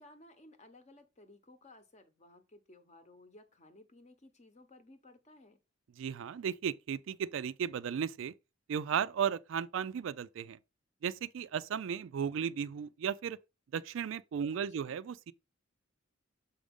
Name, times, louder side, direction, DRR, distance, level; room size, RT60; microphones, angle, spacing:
voice 1, 0.0-5.6 14.5-15.0, left 2 dB, 35° left, 0.9 m, -58 dB
voice 2, 6.0-8.3 8.7-10.6 11.0-13.4 13.7-15.3, right 7 dB, 65° right, 0.3 m, -35 dB
7.0 x 5.0 x 3.6 m
head